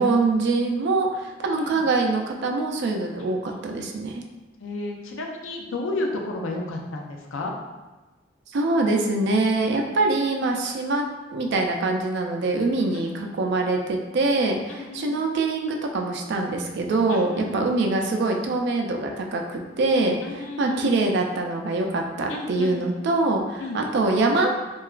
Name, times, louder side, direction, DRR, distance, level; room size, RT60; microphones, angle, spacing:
voice 1, 0.0-4.2 8.5-24.7, right 3 dB, 60° right, 2 dB, 0.3 m, -24 dB
voice 2, 4.6-7.5 12.9-13.2 14.8-15.1 17.1-17.6 20.2-20.9 22.3-22.8 23.6-23.8, left 2 dB, 80° left, 1 dB, 0.4 m, -32 dB
2.8 x 2.3 x 2.3 m, 1.2 s
head